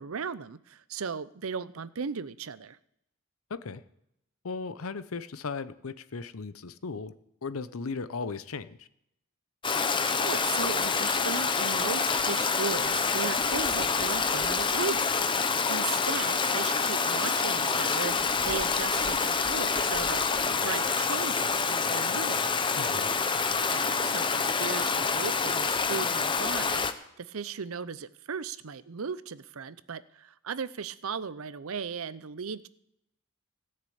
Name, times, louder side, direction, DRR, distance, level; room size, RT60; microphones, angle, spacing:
voice 1, 0.0-2.8 10.2-15.1 15.7-20.2 20.5-22.5 23.7-26.8 27.2-32.7, right 6 dB, 70° right, 15 dB, 0.6 m, -37 dB
voice 2, 3.5-3.8 4.4-7.1 7.4-8.9 22.8-23.1, left 4 dB, 70° left, 13 dB, 0.7 m, -36 dB
Stream, 9.6-26.9, left 5 dB, 20° left, 0.7 m, -27 dB
16.5 x 6.7 x 8.5 m, 0.78 s
head